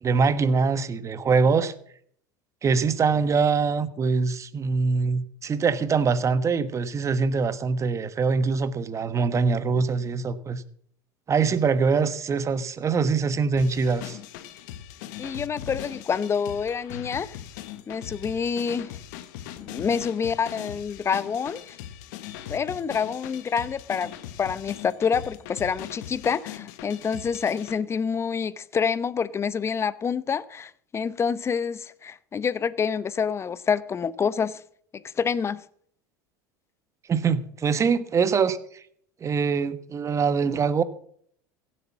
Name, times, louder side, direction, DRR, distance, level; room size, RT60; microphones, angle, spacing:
voice 1, 0.0-1.7 2.6-10.6 11.3-14.2 37.1-38.6 39.2-40.8, right 5 dB, 30° right, 1.2 m, -23 dB
sound 1, 13.6-27.8, left 11 dB, 70° left, 1.2 m, -40 dB
voice 2, 15.2-17.4 17.9-19.0 19.6-21.8 22.5-24.1 24.4-34.6 34.9-35.6, left 6 dB, 25° left, 0.8 m, -27 dB
16.0 x 7.9 x 7.3 m
hypercardioid pair, 90°, 10 cm